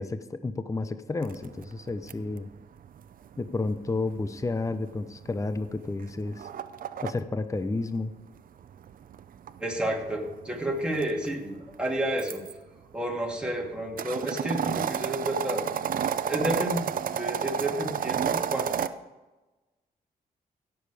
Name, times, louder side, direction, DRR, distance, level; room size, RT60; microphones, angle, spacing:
voice 1, 0.0-2.5 3.4-6.5 7.0-8.1, left 3 dB, 20° left, 11 dB, 0.7 m, -31 dB
sound 1, 1.2-7.1 8.4-12.5 13.1-18.9, right 8 dB, 65° right, 0.6 m, -32 dB
voice 2, 9.6-12.4 12.9-15.6 16.2-18.7, right 1 dB, 5° right, -1 dB, 2.7 m, -31 dB
17.0 x 7.1 x 4.9 m, 1.1 s
cardioid pair, 80°, 16 cm